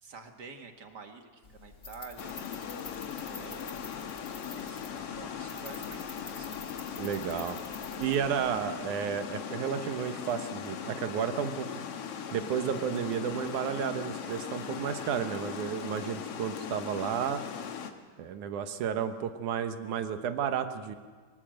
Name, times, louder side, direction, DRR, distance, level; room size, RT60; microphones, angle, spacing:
voice 1, 0.0-2.4 3.2-4.1 4.5-4.8 5.1-6.6 8.5-8.7, right 4 dB, 40° right, 5 dB, 1.8 m, -48 dB
sound 1, 1.4-8.7, left 4 dB, 30° left, 1.7 m, -48 dB
Water, 2.2-17.9, left 8 dB, 60° left, 2.1 m, -39 dB
voice 2, 6.9-7.6 8.0-11.7 12.3-17.4 18.2-21.0, right 8 dB, 75° right, 8 dB, 2.7 m, -32 dB
24.5 x 19.0 x 7.8 m, 1.5 s
omnidirectional pair, 3.5 m